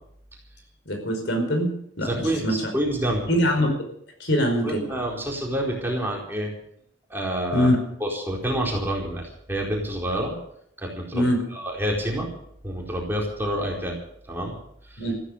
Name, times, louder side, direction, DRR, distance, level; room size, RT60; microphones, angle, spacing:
voice 1, 0.9-1.7 2.0-2.5 3.3-3.7 4.2-4.8 7.5-7.8 11.1-11.4 15.0-15.1, equal, 65° left, 4 dB, 5.1 m, -22 dB
voice 2, 2.0-3.2 4.6-6.5 7.1-7.7 8.0-10.3 10.8-12.3 12.6-14.0 14.3-14.6 14.8-15.1, right 1 dB, 10° right, -2 dB, 4.4 m, -28 dB
15.0 x 14.0 x 6.8 m, 0.69 s
head